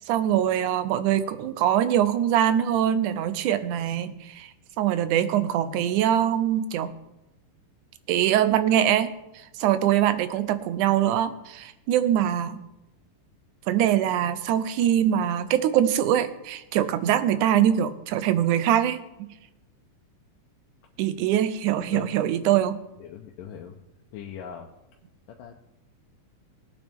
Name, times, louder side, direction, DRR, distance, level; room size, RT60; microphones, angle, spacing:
voice 1, 0.1-4.5 4.8-6.9 8.1-9.1 9.6-12.6 13.7-19.0 21.0-22.8, right 11 dB, 80° right, 12 dB, 2.0 m, -23 dB
voice 2, 23.0-23.8 24.1-24.7 25.3-25.5, left 8 dB, 90° left, 1 dB, 2.4 m, -40 dB
19.5 x 9.2 x 3.5 m, 0.94 s
omnidirectional pair, 3.7 m